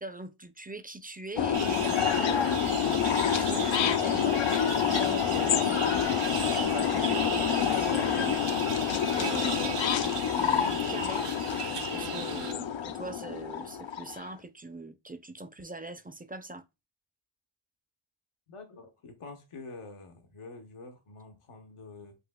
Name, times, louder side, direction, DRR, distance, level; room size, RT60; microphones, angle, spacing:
voice 1, 0.0-6.3 6.6-8.4 9.1-11.3 11.9-16.6, right 2 dB, 20° right, 0.5 m, -42 dB
sound 1, 1.4-14.2, left 8 dB, 65° left, 0.5 m, -28 dB
sound 2, 1.5-12.5, right 6 dB, 85° right, 1.0 m, -37 dB
voice 2, 18.5-22.2, left 3 dB, 80° left, 1.0 m, -47 dB
7.8 x 2.7 x 2.2 m
wide cardioid pair, 60°, 50 cm